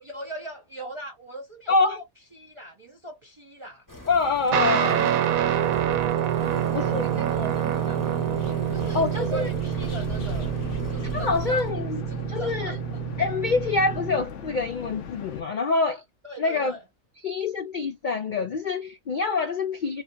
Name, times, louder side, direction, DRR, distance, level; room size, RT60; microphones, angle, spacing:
voice 1, 0.0-2.1 2.3-3.8 6.5-8.2 8.7-10.5 10.9-11.7 12.1-12.8 16.2-16.8, right 2 dB, 40° right, 0.4 m, -40 dB
voice 2, 1.7-2.0 4.1-5.1 6.7-7.1 8.9-9.5 11.1-12.8 13.2-16.0 16.4-16.8 17.2-20.0, left 4 dB, 80° left, 0.4 m, -26 dB
sound 1, 3.9-11.7, left 1 dB, 15° left, 0.8 m, -42 dB
Guitar, 4.5-14.3, right 11 dB, 80° right, 1.1 m, -27 dB
sound 2, 6.4-15.4, left 4 dB, 65° left, 1.0 m, -37 dB
3.1 x 2.6 x 2.2 m
omnidirectional pair, 1.4 m